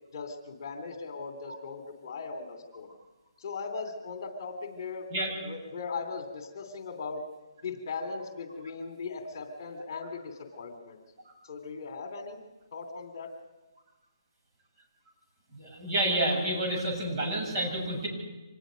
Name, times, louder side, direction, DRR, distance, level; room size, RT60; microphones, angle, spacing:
voice 1, 0.1-2.9 3.4-5.1 5.4-7.2 7.6-11.0 11.4-12.4 12.7-13.3, left 4 dB, 45° left, 5 dB, 2.9 m, -38 dB
voice 2, 15.5-18.1, right 1 dB, 35° right, -1 dB, 7.8 m, -29 dB
25.5 x 19.5 x 5.2 m, 1.1 s
hypercardioid pair, 160°, 3 cm